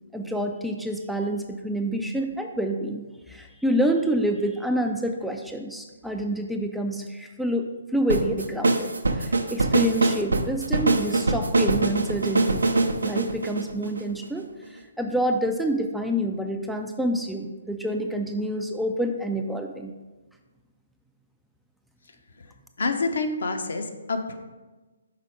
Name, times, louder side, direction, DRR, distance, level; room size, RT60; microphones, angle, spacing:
voice 1, 0.1-12.6 13.0-19.9, equal, ahead, 3 dB, 0.3 m, -28 dB
sound 1, 8.1-14.4, right 3 dB, 70° right, 0.5 m, -23 dB
voice 2, 22.8-24.4, left 3 dB, 60° left, 5 dB, 0.7 m, -27 dB
5.8 x 4.0 x 4.7 m, 1.2 s
figure-of-eight pair, 130°, 0 cm